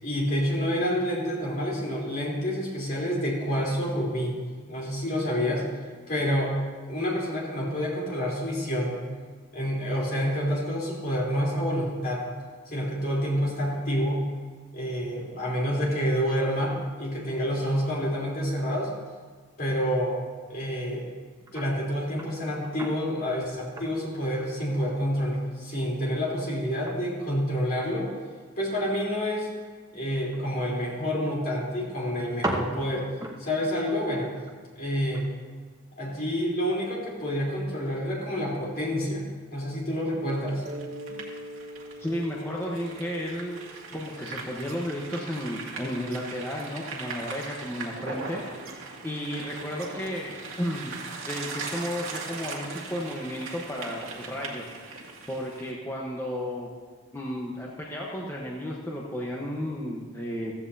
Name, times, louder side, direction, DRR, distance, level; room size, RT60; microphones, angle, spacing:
voice 1, 0.0-4.3 4.7-5.6 6.1-6.6 6.9-9.0 9.5-12.2 12.7-14.2 14.7-18.9 19.6-20.1 20.5-21.1 21.5-28.1 28.6-29.5 29.9-33.1 33.4-34.3 34.7-35.3 36.0-40.6, equal, 45° left, -4 dB, 3.7 m, -28 dB
sound 1, 20.6-20.9 21.5-21.7 22.1-23.1 23.6-25.0 25.3-25.4 25.8-27.9 28.2-28.6 28.9-29.0 29.2-29.3 30.3-31.3 31.6-31.7 32.0-35.4 35.8-35.9, right 1 dB, 15° right, 1.1 m, -37 dB
sound 2, 40.3-55.7, right 4 dB, 80° right, 1.9 m, -40 dB
Mallet percussion, 40.6-45.1, right 1 dB, 40° right, 2.3 m, -44 dB
voice 2, 42.0-43.6 43.9-48.8 49.0-50.3 50.6-51.0 51.2-56.7 57.1-60.5, equal, 10° left, -4 dB, 1.1 m, -33 dB
15.0 x 15.0 x 2.8 m, 1.5 s
head